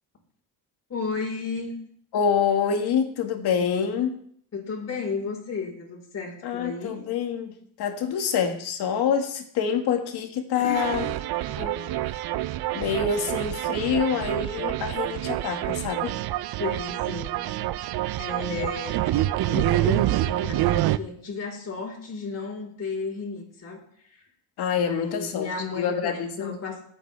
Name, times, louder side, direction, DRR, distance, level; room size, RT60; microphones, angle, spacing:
voice 1, 0.9-1.7 4.5-7.0 10.6-11.1 16.6-17.4 18.2-19.0 19.5-23.8 24.7-26.8, left 4 dB, 40° left, -1 dB, 4.5 m, -33 dB
voice 2, 2.1-4.2 6.4-11.0 11.5-11.8 12.7-16.2 24.6-26.6, left 7 dB, 80° left, 4 dB, 2.0 m, -26 dB
sound 1, 10.7-21.0, right 15 dB, 70° right, 0.6 m, -27 dB
20.5 x 8.7 x 3.4 m, 0.64 s
cardioid pair, 105°, 38 cm